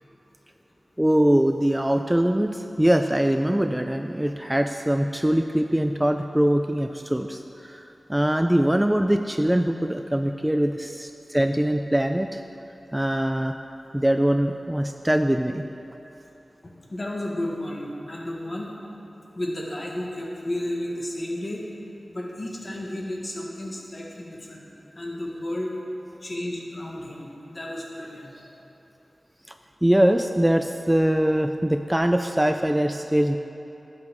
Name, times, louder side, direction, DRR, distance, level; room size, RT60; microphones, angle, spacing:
voice 1, 1.0-7.8 8.1-12.4 12.9-13.5 13.9-15.7 29.8-33.4, right 1 dB, 10° right, 6 dB, 0.3 m, -22 dB
voice 2, 16.9-18.7 19.3-21.6 22.1-24.7 24.9-25.7 26.2-28.6, left 1 dB, 40° left, -2 dB, 1.6 m, -32 dB
11.5 x 8.4 x 3.6 m, 2.9 s
wide cardioid pair, 65°, 0 cm